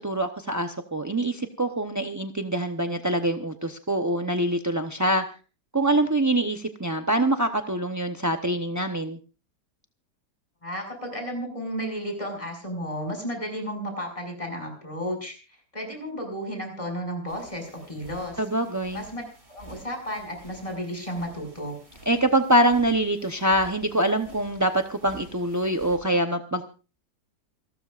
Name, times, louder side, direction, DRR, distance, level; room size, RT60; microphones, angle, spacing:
voice 1, 0.0-5.2 5.7-9.2 18.4-19.0 22.1-26.6, right 1 dB, 20° right, 5 dB, 0.4 m, -24 dB
voice 2, 10.6-15.3 15.7-18.4 18.9-19.2 19.5-21.8, equal, 20° left, 3 dB, 6.0 m, -33 dB
sound 1, 17.3-26.0, right 2 dB, 40° right, 6.9 m, -50 dB
28.5 x 13.0 x 2.5 m, 0.34 s
omnidirectional pair, 1.8 m